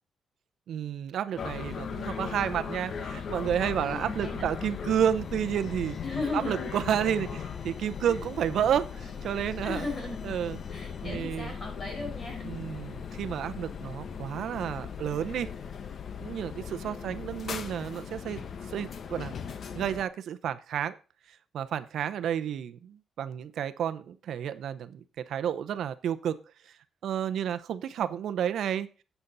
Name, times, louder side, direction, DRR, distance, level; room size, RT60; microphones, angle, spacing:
voice 1, 0.7-6.0 6.3-9.8 10.2-10.6 11.0-11.5 12.4-15.5 16.2-18.4 18.7-19.3 19.7-21.0 21.5-26.4 26.7-26.8 27.0-28.9, right 9 dB, 70° right, 11 dB, 0.7 m, -31 dB
sound 1, 1.4-20.0, left 6 dB, 45° left, 0.9 m, -38 dB
voice 2, 3.8-4.4 6.0-6.8 8.0-8.1 9.6-10.2 10.7-12.4 12.7-13.0 16.8-17.2, left 2 dB, 30° left, 3 dB, 4.6 m, -37 dB
11.5 x 8.2 x 4.0 m, 0.35 s
cardioid pair, 160°, 0 cm